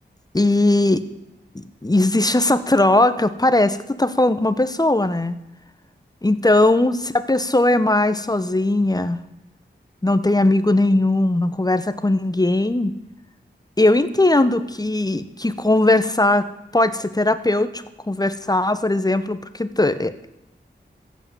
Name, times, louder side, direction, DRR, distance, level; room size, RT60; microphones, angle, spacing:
voice 1, 0.3-1.0 1.5-5.3 6.2-9.2 10.0-12.9 13.8-16.5 16.7-20.3, left 2 dB, 20° left, 12 dB, 1.0 m, -19 dB
14.5 x 8.6 x 7.7 m, 0.88 s
wide cardioid pair, 55°, 19 cm